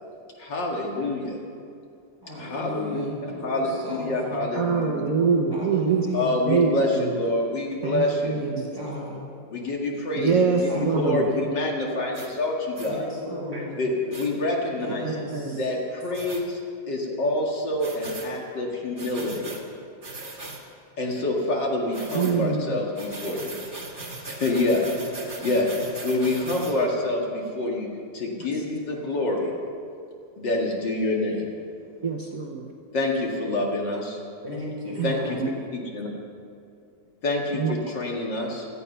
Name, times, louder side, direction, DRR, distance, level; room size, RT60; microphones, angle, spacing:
voice 1, 0.4-1.4 2.4-3.0 3.4-5.0 6.1-8.4 9.5-10.5 10.9-13.0 13.8-15.1 15.6-16.6 16.9-19.5 21.0-23.6 24.3-24.8 25.4-25.7 26.0-27.9 28.1-29.5 30.4-31.5 32.9-34.2 35.0-35.4 35.7-36.1 37.2-38.7, left 2 dB, 70° left, -1 dB, 2.8 m, -27 dB
voice 2, 2.2-4.4 5.5-6.4 8.4-9.2 10.7-11.4 12.8-13.8 14.8-15.7 34.4-35.5, left 1 dB, 10° right, -5 dB, 5.2 m, -35 dB
voice 3, 4.5-6.1 6.5-7.1 7.8-8.7 10.2-11.3 15.0-15.6 22.1-22.8 32.0-32.7 35.0-35.1 35.4-35.5 37.5-37.7, right 5 dB, 50° right, 1 dB, 1.4 m, -24 dB
sound 1, 12.1-12.3 12.8-12.9 14.1-14.3 16.1-16.4 17.8-18.3 19.0-19.6 20.0-20.6 21.9-22.4 23.0-26.8, right 2 dB, 25° right, 1.9 m, -38 dB
17.5 x 14.0 x 5.6 m, 2.4 s
omnidirectional pair, 2.0 m